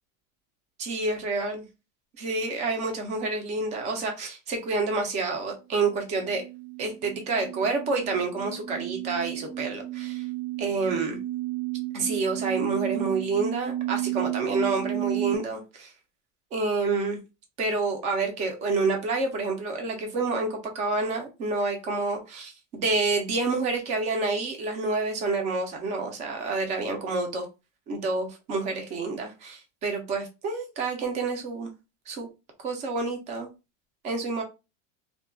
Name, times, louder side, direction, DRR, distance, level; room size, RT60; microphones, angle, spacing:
voice 1, 0.8-1.7 2.2-6.4 6.8-10.3 10.6-11.2 11.9-15.9 16.5-17.2 17.6-27.5 27.9-31.7 32.1-32.3 32.6-33.5 34.0-34.4, right 3 dB, 20° right, 0.3 m, -28 dB
sound 1, 5.9-15.3, right 14 dB, 75° right, 0.6 m, -33 dB
2.3 x 2.1 x 3.6 m
supercardioid pair, 160°, 38 cm